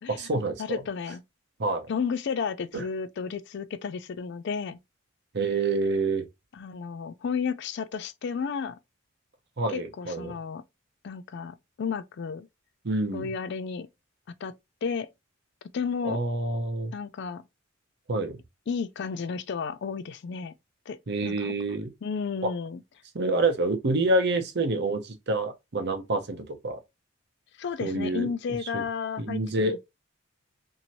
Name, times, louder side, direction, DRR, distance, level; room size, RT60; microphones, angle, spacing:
voice 1, 0.1-0.8 1.6-1.9 2.7-2.8 5.3-6.3 9.6-10.3 12.8-13.3 16.0-16.9 18.1-18.4 21.1-21.9 22.4-22.5 23.1-26.8 27.8-28.3 28.7-28.8 29.2-29.8, right 2 dB, 55° right, 0.7 m, -27 dB
voice 2, 0.6-1.2 1.9-4.8 6.5-8.8 9.7-10.6 11.0-12.5 13.1-13.9 14.4-14.5 14.8-15.1 15.7-16.2 16.9-17.4 18.7-20.5 20.9-21.5 22.0-22.8 27.6-29.8, left 5 dB, 60° left, 0.4 m, -32 dB
2.9 x 2.7 x 2.6 m
head